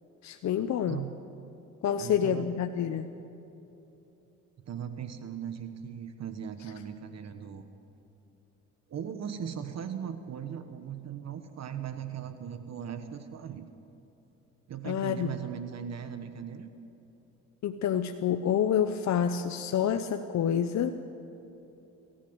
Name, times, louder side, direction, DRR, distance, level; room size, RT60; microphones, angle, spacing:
voice 1, 0.2-1.0 1.8-3.1 14.8-15.3 17.6-21.0, left 8 dB, 65° left, 8 dB, 0.9 m, -28 dB
voice 2, 2.0-2.5 4.7-7.6 8.9-13.7 14.7-16.7, right 8 dB, 60° right, 9 dB, 1.4 m, -38 dB
25.5 x 14.5 x 8.0 m, 3.0 s
cardioid pair, 90°, 30 cm